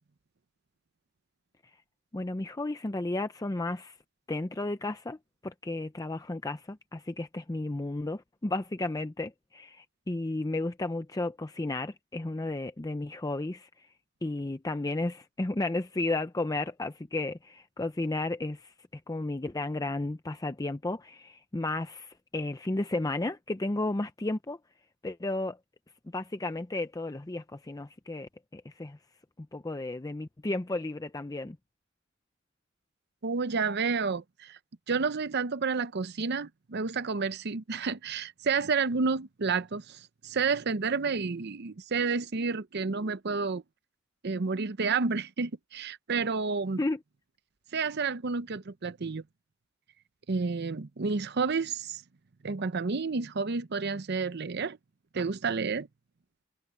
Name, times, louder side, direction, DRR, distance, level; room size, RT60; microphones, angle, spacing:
voice 1, 2.1-4.0 4.3-5.2 5.4-13.9 14.2-24.6 25.0-25.6 26.0-29.0 29.4-31.6 46.8-47.0, left 2 dB, 20° left, 0.6 m, -33 dB
voice 2, 33.2-34.6 34.9-43.6 44.2-46.8 47.7-49.2 50.3-52.0 52.4-54.8 55.1-55.9, right 4 dB, 55° right, 0.7 m, -30 dB
head